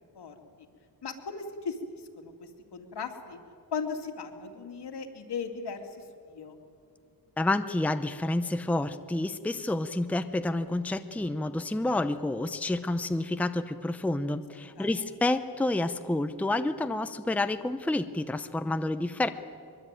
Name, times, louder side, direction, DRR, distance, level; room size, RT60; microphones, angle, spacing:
voice 1, 1.0-3.4 3.7-6.6 14.5-14.9, left 5 dB, 75° left, 4 dB, 2.8 m, -38 dB
voice 2, 7.4-19.3, left 2 dB, 5° left, 10 dB, 0.7 m, -29 dB
23.0 x 23.0 x 9.1 m, 2.2 s
wide cardioid pair, 175°, 40 cm